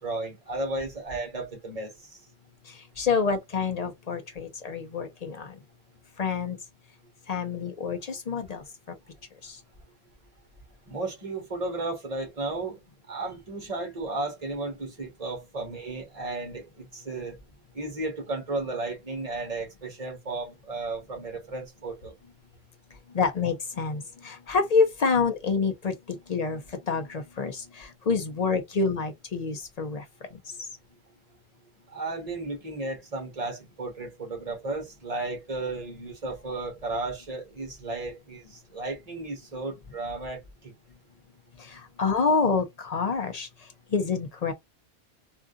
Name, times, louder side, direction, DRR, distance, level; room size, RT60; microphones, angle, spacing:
voice 1, 0.0-1.9 10.9-12.8 13.1-17.4 17.7-22.1 31.9-40.7, right 2 dB, 35° right, 1.4 m, -34 dB
voice 2, 3.0-5.5 6.2-6.6 7.3-9.0 9.4-9.6 23.1-26.6 26.9-30.0 41.6-43.5 43.9-44.5, left 5 dB, 50° left, 0.5 m, -27 dB
3.6 x 2.5 x 2.5 m
omnidirectional pair, 1.1 m